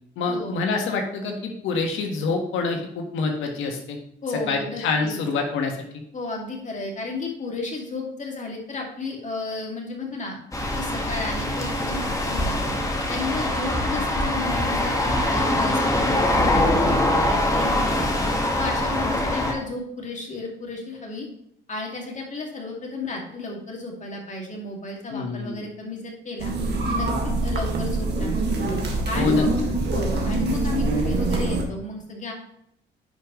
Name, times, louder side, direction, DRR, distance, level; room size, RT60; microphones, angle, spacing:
voice 1, 0.2-4.0 4.5-5.8 25.1-25.6 29.1-29.4, left 4 dB, 90° left, 3 dB, 1.5 m, -26 dB
voice 2, 4.2-5.2 6.1-10.4 10.7-12.7 13.1-18.1 18.5-21.3 21.7-26.5 26.9-27.1 27.4-28.3 29.1-32.3, left 3 dB, 40° left, 0 dB, 2.4 m, -33 dB
sound 1, 10.5-19.5, left 1 dB, 15° left, 1.6 m, -23 dB
sound 2, 26.4-31.6, right 2 dB, 55° right, 1.9 m, -24 dB
10.0 x 5.2 x 3.1 m, 0.73 s
cardioid pair, 90°, 20 cm